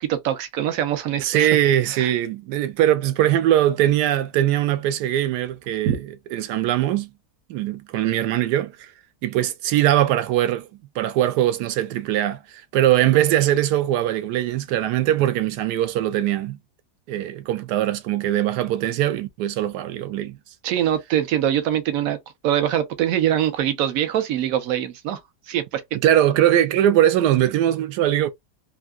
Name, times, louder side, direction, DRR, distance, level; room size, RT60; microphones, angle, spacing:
voice 1, 0.0-1.5 1.9-2.1 5.9-6.0 20.6-22.2 22.4-25.2 25.5-25.8, right 11 dB, 65° right, 1.0 m, -23 dB
voice 2, 1.2-7.1 7.5-8.9 9.2-10.7 11.0-16.6 17.1-20.4 26.0-28.3, right 12 dB, 85° right, 1.2 m, -21 dB
3.5 x 2.7 x 2.3 m
omnidirectional pair, 1.7 m